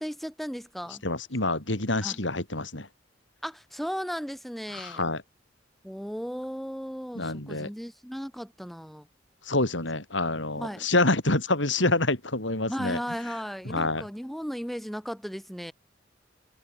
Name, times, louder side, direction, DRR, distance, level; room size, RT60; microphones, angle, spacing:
voice 1, 0.0-1.0 2.0-2.2 3.4-5.1 5.8-9.1 10.6-10.9 12.7-15.7, equal, ahead, 7.9 m, -35 dB
voice 2, 1.0-2.9 4.7-5.2 7.2-7.7 9.5-13.0 13.7-14.0, left 2 dB, 85° left, 5.3 m, -27 dB
head